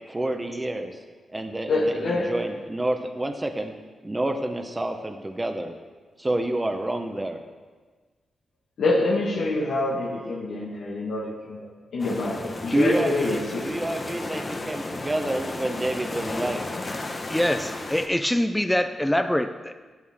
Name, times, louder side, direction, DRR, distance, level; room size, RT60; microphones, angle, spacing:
voice 1, 0.1-0.9 1.3-3.7 4.0-5.7 6.2-7.4 12.4-16.6, right 1 dB, 20° right, 6 dB, 1.1 m, -28 dB
voice 2, 1.7-2.3 8.8-13.8, left 2 dB, 80° left, -4 dB, 1.6 m, -26 dB
sound 1, 12.0-18.1, left 2 dB, 40° left, 1.1 m, -34 dB
voice 3, 17.3-19.8, left 1 dB, 10° left, 9 dB, 0.5 m, -24 dB
11.5 x 8.8 x 3.7 m, 1.4 s
cardioid pair, 60°, 0 cm